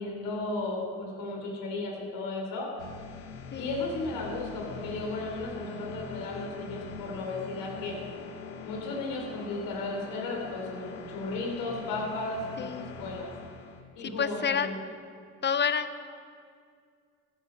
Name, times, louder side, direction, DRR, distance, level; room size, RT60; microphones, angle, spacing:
voice 1, 0.0-2.7 3.5-7.9 8.6-13.3 13.9-14.8, left 2 dB, 70° left, 0 dB, 4.0 m, -35 dB
sound 1, 2.8-13.8, left 4 dB, 90° left, 1.4 m, -43 dB
voice 2, 3.5-3.8 12.6-13.0 14.0-14.7 15.4-15.9, left 7 dB, 30° left, 12 dB, 0.9 m, -29 dB
14.5 x 11.5 x 4.8 m, 2.2 s
hypercardioid pair, 65°, 35 cm